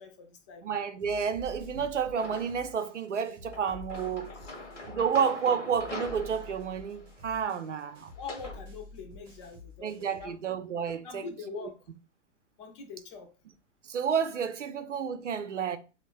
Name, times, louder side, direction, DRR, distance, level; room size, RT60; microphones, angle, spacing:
voice 1, 0.0-0.7 4.4-4.5 4.9-5.0 8.1-10.6 11.0-11.7 12.6-13.4, left 5 dB, 25° left, 0.5 m, -44 dB
voice 2, 0.6-4.3 4.9-8.1 9.8-11.7 13.9-15.8, right 7 dB, 80° right, 0.5 m, -30 dB
sound 1, 1.0-5.4 5.7-10.3, left 2 dB, 10° right, 0.7 m, -49 dB
sound 2, 2.2-2.8 3.5-8.6, left 2 dB, 75° left, 0.9 m, -44 dB
3.3 x 2.0 x 2.3 m
figure-of-eight pair, 110°, 36 cm